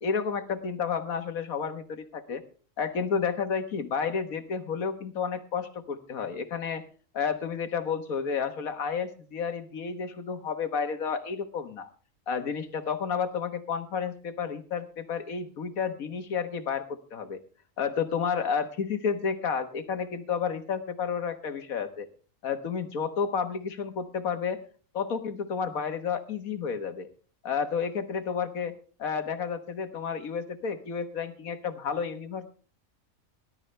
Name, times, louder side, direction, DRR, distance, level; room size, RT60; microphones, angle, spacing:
voice 1, 0.0-2.4 2.8-6.8 7.1-11.9 12.3-17.4 17.8-22.1 22.4-24.6 24.9-27.1 27.4-28.7 29.0-32.5, left 6 dB, 85° left, 9 dB, 1.8 m, -31 dB
19.0 x 12.0 x 3.3 m, 0.39 s
omnidirectional pair, 1.4 m